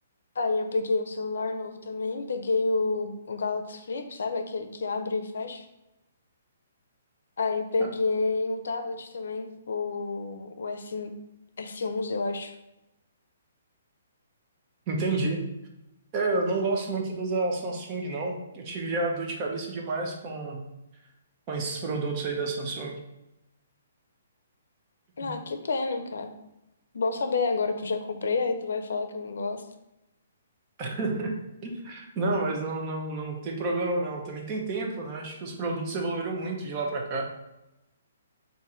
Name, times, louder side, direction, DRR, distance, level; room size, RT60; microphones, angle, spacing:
voice 1, 0.4-5.6 7.4-11.1 11.6-12.5 25.2-26.3 26.9-29.6, left 3 dB, 80° left, 7 dB, 0.5 m, -29 dB
voice 2, 14.9-15.4 16.1-20.6 21.5-23.0 25.2-25.3 30.8-31.3 31.6-37.3, right 3 dB, 25° right, 1 dB, 0.7 m, -30 dB
3.7 x 2.6 x 4.2 m, 0.91 s
hypercardioid pair, 165°, 0 cm